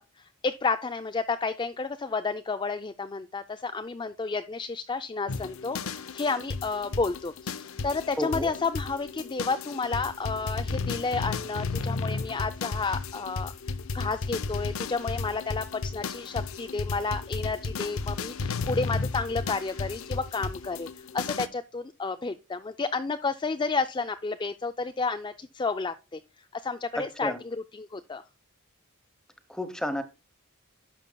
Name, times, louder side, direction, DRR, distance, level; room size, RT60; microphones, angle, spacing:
voice 1, 0.0-13.5 13.9-26.2 26.5-27.3 27.7-28.2, left 4 dB, 20° left, 0.4 m, -31 dB
sound 1, 5.3-21.5, left 4 dB, 70° left, 0.7 m, -34 dB
voice 2, 8.2-8.5 26.9-27.4 29.5-30.0, equal, 5° left, 0.9 m, -31 dB
11.0 x 6.8 x 2.2 m
head